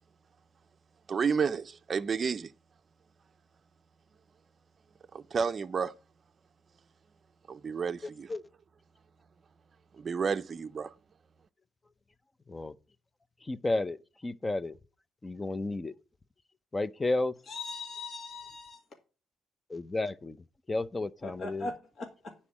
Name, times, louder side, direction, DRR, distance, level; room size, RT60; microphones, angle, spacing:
voice 1, 1.1-2.5 5.1-5.9 7.5-8.3 10.0-10.9, right 6 dB, 40° right, 0.5 m, -31 dB
voice 2, 8.0-8.4 12.5-12.7 13.5-14.0 14.2-14.7 15.2-15.9 16.7-17.3 19.7-20.4 20.7-21.7, left 2 dB, 20° left, 0.6 m, -32 dB
voice 3, 17.5-18.8 21.2-22.3, left 3 dB, 55° left, 1.9 m, -40 dB
9.8 x 4.3 x 7.2 m
cardioid pair, 90°, 0 cm